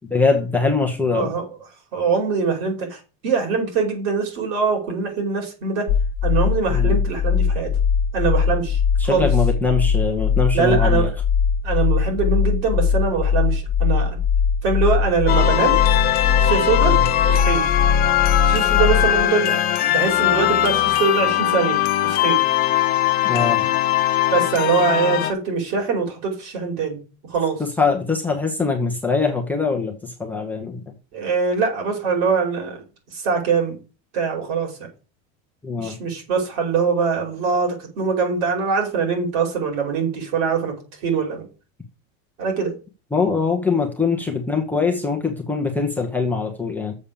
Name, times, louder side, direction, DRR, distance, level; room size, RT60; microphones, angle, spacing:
voice 1, 0.1-1.3 6.7-7.0 9.0-11.1 23.2-23.6 27.6-30.9 35.6-35.9 43.1-47.0, left 4 dB, 5° left, 0.9 m, -22 dB
voice 2, 1.1-1.5 1.9-5.9 6.2-7.7 8.1-9.3 10.5-11.1 11.6-14.2 14.6-15.8 16.4-17.0 17.2-17.6 18.5-19.6 19.9-22.4 24.3-27.0 27.2-27.6 31.1-32.8 33.1-33.8 34.1-34.7 35.8-40.7 41.0-41.5 42.4-42.7, right 5 dB, 60° right, 5.2 m, -23 dB
sound 1, 5.9-19.2, left 6 dB, 40° left, 1.0 m, -20 dB
sound 2, 15.3-25.3, left 13 dB, 25° left, 0.5 m, -20 dB
7.2 x 6.5 x 6.9 m
cardioid pair, 175°, 39 cm